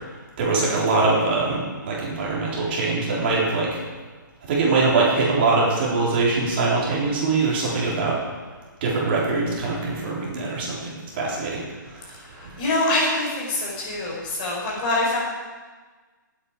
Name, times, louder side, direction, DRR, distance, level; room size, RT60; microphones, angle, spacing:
voice 1, 0.4-3.7 4.5-8.2 8.8-11.6, right 3 dB, 30° right, -5 dB, 4.0 m, -22 dB
voice 2, 12.6-15.2, left 2 dB, 25° left, -4 dB, 4.4 m, -24 dB
19.0 x 9.0 x 5.0 m, 1.4 s
hypercardioid pair, 170°, 11 cm